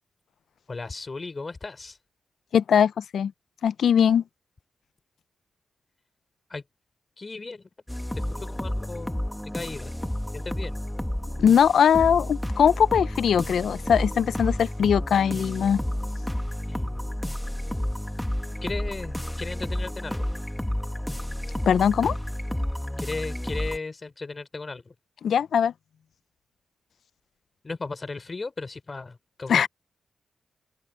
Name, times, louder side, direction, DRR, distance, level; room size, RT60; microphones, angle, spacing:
voice 1, 0.7-2.0 6.5-6.6 7.2-7.7 8.1-9.2 9.5-9.9 10.3-10.8 16.7-17.3 18.6-20.3 23.0-24.9 27.6-29.7, left 3 dB, 35° left, 3.4 m, -36 dB
voice 2, 2.5-3.3 3.6-4.2 11.4-15.8 21.7-22.2 25.2-25.7 29.5-29.7, left 8 dB, 80° left, 0.5 m, -21 dB
sound 1, 7.9-23.8, left 1 dB, 5° left, 1.9 m, -31 dB
cardioid pair, 75°, 0 cm